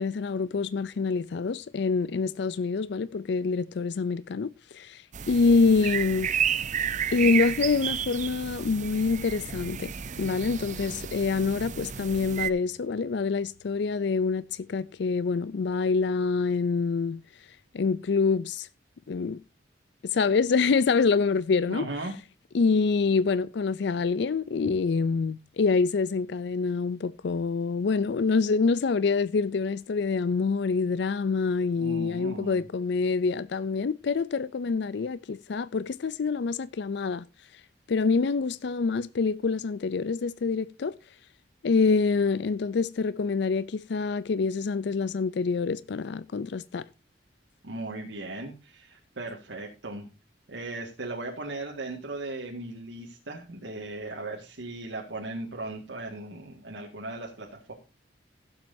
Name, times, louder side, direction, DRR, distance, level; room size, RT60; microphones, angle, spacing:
voice 1, 0.0-6.5 7.1-17.2 17.7-18.7 19.1-19.4 20.0-21.9 22.5-37.3 37.9-40.9 41.6-46.8, left 4 dB, 65° left, 0.4 m, -26 dB
sound 1, 5.1-12.5, right 8 dB, 45° right, 0.5 m, -32 dB
sound 2, 10.8-17.6, left 3 dB, 45° left, 1.1 m, -55 dB
voice 2, 21.7-22.1 31.8-32.6 47.6-50.1 50.5-57.7, right 2 dB, 85° right, 1.9 m, -37 dB
16.0 x 7.6 x 2.7 m
head